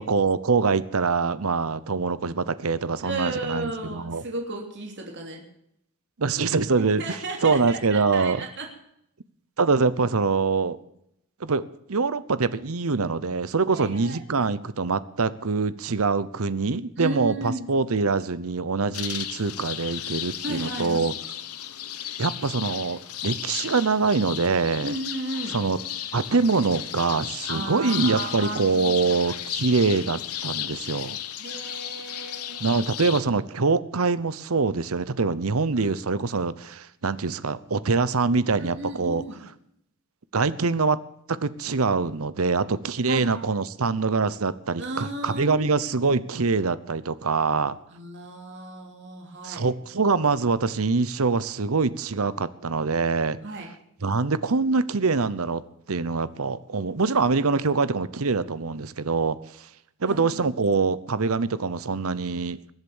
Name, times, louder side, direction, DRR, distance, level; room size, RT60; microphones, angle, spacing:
voice 1, 0.0-4.2 6.2-8.5 9.6-10.8 11.4-21.1 22.2-24.9 25.5-25.8 26.1-31.2 32.6-39.2 40.3-41.0 41.3-47.8 49.4-53.4 54.0-55.6 55.9-59.7 60.0-62.6, right 4 dB, 70° right, 16 dB, 0.8 m, -24 dB
voice 2, 3.0-5.4 6.8-8.7 13.7-14.2 17.0-17.7 20.4-21.1 24.8-25.6 27.5-29.2 31.4-32.8 35.8-35.9 38.6-39.5 43.1-43.5 44.8-45.6 47.9-49.7 53.4-53.7 60.1-60.5, right 2 dB, 55° right, 1 dB, 3.0 m, -34 dB
sound 1, 18.9-33.2, left 11 dB, 90° left, 1.2 m, -34 dB
21.5 x 8.1 x 7.2 m, 0.75 s
head